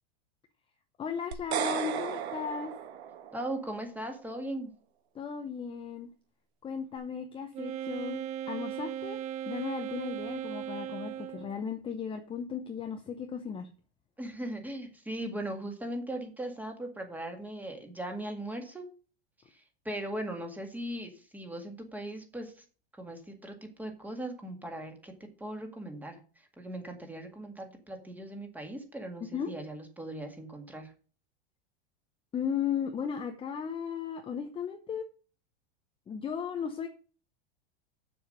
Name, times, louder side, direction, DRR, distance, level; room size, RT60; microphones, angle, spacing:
voice 1, 1.0-2.7 5.1-6.1 6.6-8.2 8.5-9.2 9.5-13.7 29.3-29.5 32.3-35.1 36.1-36.9, left 7 dB, 15° left, 5 dB, 0.8 m, -35 dB
sound 1, 1.3-3.6, right 9 dB, 85° right, 1.5 m, -34 dB
voice 2, 3.3-4.7 14.2-18.9 19.5-22.7 22.9-25.1 25.4-30.9, right 1 dB, 5° right, 5 dB, 1.9 m, -39 dB
Wind instrument woodwind instrument, 7.5-11.6, right 11 dB, 20° right, 0.4 m, -37 dB
7.3 x 7.2 x 5.1 m, 0.38 s
supercardioid pair, 140°, 32 cm